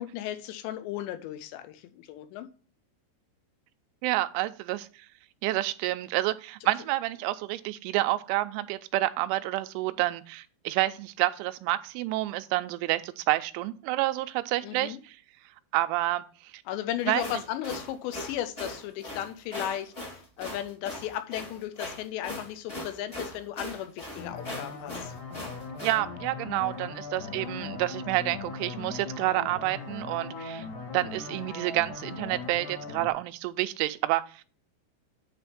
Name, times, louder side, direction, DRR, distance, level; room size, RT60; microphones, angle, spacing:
voice 1, 0.0-2.5 14.6-15.0 16.7-25.1 27.2-27.5, left 12 dB, 80° left, 9 dB, 2.7 m, -35 dB
voice 2, 4.0-5.1 5.4-15.2 15.7-16.6 17.1-17.2 25.8-30.7 30.9-34.4, right 17 dB, 90° right, 11 dB, 3.0 m, -29 dB
sound 1, 17.0-26.0, left 1 dB, 50° left, 0.6 m, -39 dB
sound 2, 24.2-33.1, left 4 dB, 65° left, 2.0 m, -39 dB
9.0 x 3.4 x 5.6 m, 0.39 s
omnidirectional pair, 5.4 m